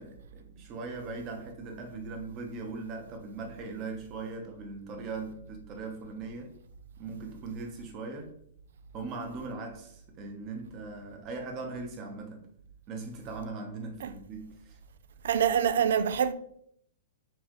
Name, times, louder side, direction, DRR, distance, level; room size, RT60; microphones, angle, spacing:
voice 1, 0.0-6.5 7.0-8.3 8.9-12.5 12.9-14.8, right 3 dB, 35° right, 1.0 m, -40 dB
voice 2, 15.2-16.3, right 8 dB, 75° right, 0.4 m, -25 dB
4.7 x 3.3 x 3.1 m
hypercardioid pair, 140°, 0 cm